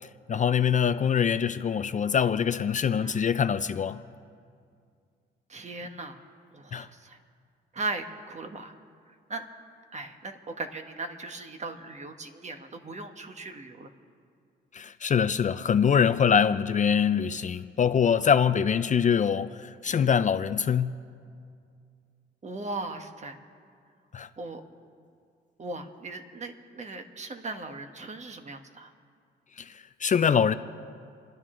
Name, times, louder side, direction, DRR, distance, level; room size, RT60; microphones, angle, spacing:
voice 1, 0.3-4.0 6.7-6.9 14.7-21.0 24.1-24.3 29.6-30.5, left 7 dB, 40° left, 0.5 m, -24 dB
voice 2, 5.5-6.2 6.5-7.2 7.7-8.7 9.3-9.4 9.9-13.9 19.9-20.1 22.4-23.4 24.4-24.6 25.6-28.9, right 3 dB, 35° right, 1.3 m, -38 dB
29.0 x 11.0 x 3.8 m
cardioid pair, 90°, 20 cm